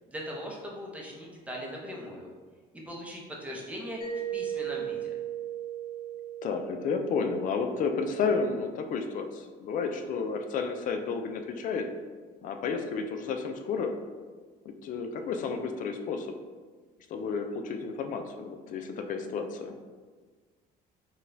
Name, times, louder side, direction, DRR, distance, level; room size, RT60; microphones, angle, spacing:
voice 1, 0.1-2.3 2.9-4.0 4.3-5.1, equal, 10° right, -2 dB, 0.7 m, -39 dB
Mallet percussion, 4.0-8.6, right 10 dB, 20° left, 0.9 m, -37 dB
voice 2, 6.4-11.9 12.4-13.9 14.7-16.3 17.1-19.8, left 5 dB, 50° left, 6 dB, 0.4 m, -31 dB
3.9 x 2.3 x 2.6 m, 1.5 s
cardioid pair, 110°, 17 cm